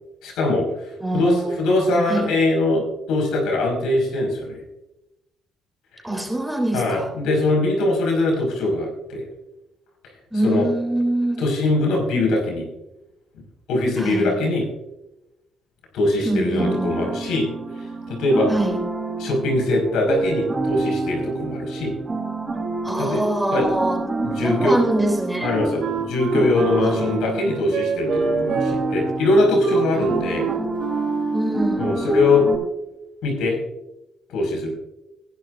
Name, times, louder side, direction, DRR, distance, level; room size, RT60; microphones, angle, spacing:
voice 1, 0.2-4.6 6.7-9.2 10.4-10.7 11.4-12.7 13.7-14.7 15.9-17.5 17.8-18.5 19.2-21.9 23.0-23.2 23.5-23.7 24.2-24.7 25.4-30.5 31.8-32.5 33.2-33.6 34.3-34.7, left 2 dB, 90° left, 0 dB, 5.4 m, -22 dB
voice 2, 1.0-2.3 6.0-7.1 10.3-11.4 14.0-14.3 16.2-16.9 18.5-18.8 22.8-25.5 26.8-27.2 29.9-30.1 31.3-31.9, right 1 dB, 5° right, 1 dB, 3.5 m, -24 dB
sound 1, 16.6-32.6, right 3 dB, 25° right, 3.7 m, -28 dB
Wind instrument woodwind instrument, 25.4-31.7, right 6 dB, 85° right, 5.0 m, -28 dB
20.0 x 11.5 x 2.6 m, 0.92 s
cardioid pair, 90°, 0 cm